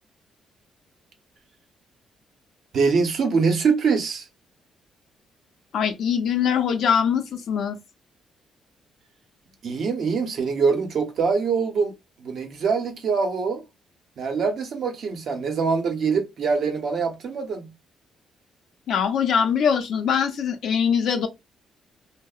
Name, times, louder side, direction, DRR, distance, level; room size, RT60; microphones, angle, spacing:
voice 1, 2.7-4.3 9.6-11.9 12.2-13.6 14.2-17.7, right 5 dB, 65° right, 0.7 m, -24 dB
voice 2, 5.7-7.8 18.9-21.3, left 7 dB, 70° left, 0.5 m, -22 dB
2.7 x 2.0 x 2.3 m
cardioid pair, 90°, 0 cm